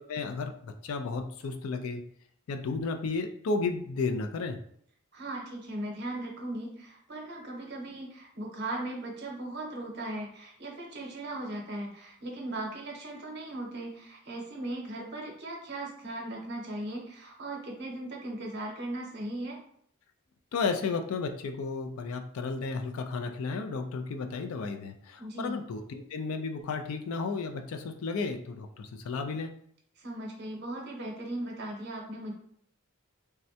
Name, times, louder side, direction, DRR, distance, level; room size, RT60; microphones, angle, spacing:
voice 1, 0.1-2.0 2.5-4.6 20.5-29.5, left 4 dB, 75° left, 6 dB, 0.4 m, -33 dB
voice 2, 5.1-19.6 25.2-25.6 30.0-32.3, right 1 dB, 50° right, 0 dB, 0.7 m, -38 dB
3.5 x 2.1 x 2.7 m, 0.65 s
head